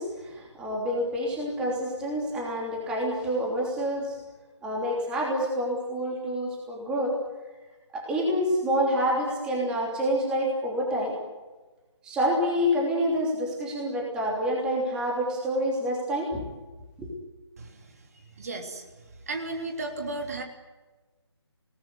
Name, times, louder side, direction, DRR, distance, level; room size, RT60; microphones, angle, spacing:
voice 1, 0.0-4.2 4.6-7.1 7.9-11.1 12.0-16.4 17.0-17.1, equal, 5° right, -2 dB, 3.1 m, -27 dB
voice 2, 17.6-18.8 19.3-20.4, right 2 dB, 35° right, 4 dB, 3.2 m, -35 dB
29.0 x 19.5 x 9.6 m, 1.2 s
figure-of-eight pair, 155°, 15 cm